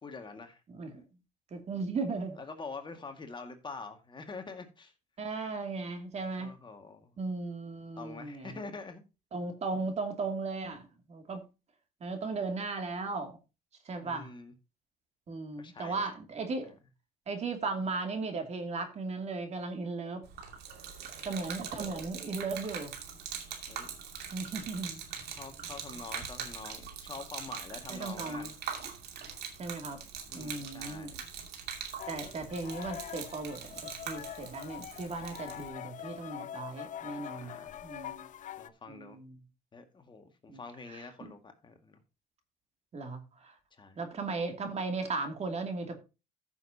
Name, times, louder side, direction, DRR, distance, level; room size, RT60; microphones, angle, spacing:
voice 1, 0.0-0.6 2.4-4.9 6.4-7.2 8.0-9.0 14.0-14.5 15.6-16.1 16.6-16.7 23.7-23.9 25.3-28.5 30.3-31.2 37.3-37.8 38.6-39.2 39.7-42.0 43.7-44.0, left 4 dB, 30° left, 1.9 m, -45 dB
voice 2, 1.5-2.4 5.2-6.6 7.2-8.6 9.3-11.5 12.0-13.3 13.8-14.3 15.3-16.7 17.3-20.3 21.2-22.9 24.3-25.0 27.9-28.5 29.6-30.0 30.3-31.1 32.1-33.7 34.0-37.5 37.8-38.3 38.9-39.3 40.5-40.6 40.9-41.3 42.9-43.5 44.0-46.0, right 3 dB, 40° right, 2.5 m, -36 dB
Gurgling / Liquid, 20.2-35.7, right 7 dB, 75° right, 2.6 m, -42 dB
sound 1, 32.0-38.7, left 10 dB, 50° left, 0.6 m, -44 dB
14.5 x 7.0 x 2.8 m
cardioid pair, 110°, 17 cm